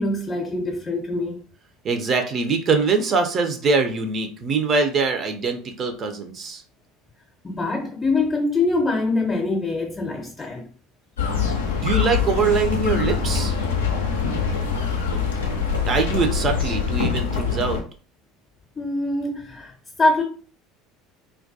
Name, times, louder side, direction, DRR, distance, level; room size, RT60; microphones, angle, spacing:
voice 1, 0.0-1.4 7.4-10.6 18.8-19.7 20.0-20.2, left 2 dB, 25° left, 0.6 m, -23 dB
voice 2, 1.8-6.6 11.8-13.6 15.8-17.8, right 4 dB, 40° right, 0.4 m, -23 dB
sound 1, 11.2-17.8, left 5 dB, 75° left, 0.4 m, -24 dB
2.2 x 2.2 x 2.6 m
figure-of-eight pair, 65°, 0 cm